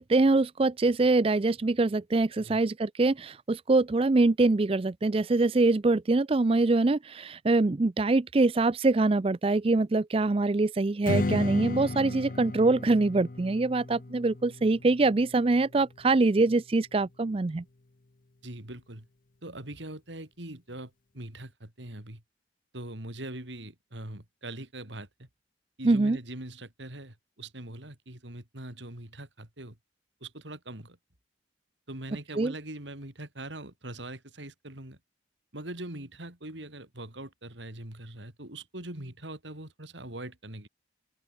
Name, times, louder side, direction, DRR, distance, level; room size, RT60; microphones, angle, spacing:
voice 1, 0.0-17.6 25.8-26.2 32.3-32.5, right 3 dB, 30° right, 0.4 m, -24 dB
Strum, 11.0-16.3, left 2 dB, 45° left, 0.8 m, -35 dB
voice 2, 18.4-19.1 19.4-22.2 22.7-25.3 25.8-29.8 30.2-31.0 31.9-35.0 35.5-40.7, right 1 dB, 75° right, 4.0 m, -42 dB
open air
head